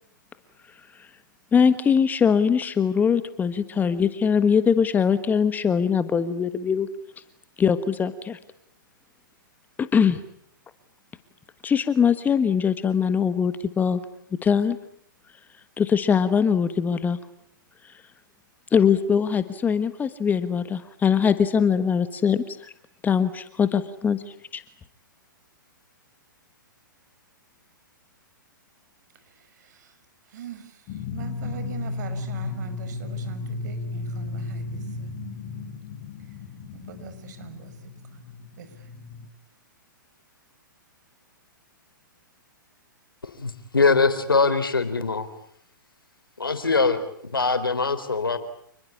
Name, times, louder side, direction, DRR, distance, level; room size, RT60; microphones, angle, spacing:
voice 1, 1.5-6.9 7.6-8.4 9.8-10.2 11.6-14.0 14.4-14.8 15.8-17.2 18.7-22.7 23.0-24.6, left 7 dB, 15° left, 1.4 m, -22 dB
voice 2, 29.6-29.9 30.3-30.8 31.1-35.1 36.7-37.9 38.6-38.7, right 7 dB, 55° right, 5.7 m, -42 dB
sound 1, 30.9-39.3, left 3 dB, 40° left, 5.7 m, -34 dB
voice 3, 43.4-45.3 46.4-48.4, left 4 dB, 90° left, 3.9 m, -22 dB
28.5 x 21.0 x 8.6 m
hypercardioid pair, 120°, 11 cm